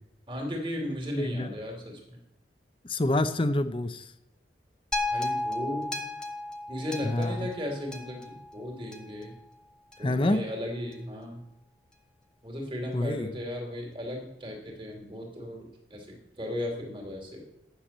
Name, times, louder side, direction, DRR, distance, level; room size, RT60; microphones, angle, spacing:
voice 1, 0.3-2.0 5.1-5.9 6.7-9.3 10.0-11.4 12.4-17.4, left 1 dB, 30° right, 1 dB, 2.8 m, -36 dB
voice 2, 1.2-1.5 2.8-4.1 7.0-7.5 10.0-10.4 12.9-13.3, left 1 dB, 30° left, 10 dB, 0.7 m, -27 dB
sound 1, 4.9-9.2 9.9-10.0, left 2 dB, 5° left, 1.1 m, -34 dB
10.0 x 7.1 x 7.4 m, 0.85 s
head